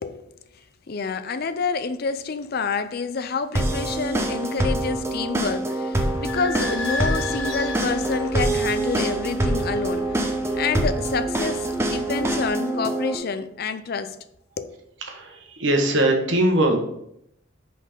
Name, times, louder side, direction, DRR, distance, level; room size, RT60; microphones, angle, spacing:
voice 1, 0.0-0.3 0.9-10.2 10.5-14.2 14.6-14.7, left 5 dB, 50° left, 0.5 m, -28 dB
sound 1, 3.5-13.1, right 1 dB, 15° right, 0.7 m, -25 dB
Idling / Squeak, 6.1-12.5, left 3 dB, 90° left, 1.0 m, -35 dB
voice 2, 15.1-16.8, right 1 dB, 75° right, 1.3 m, -21 dB
5.8 x 5.2 x 5.2 m
head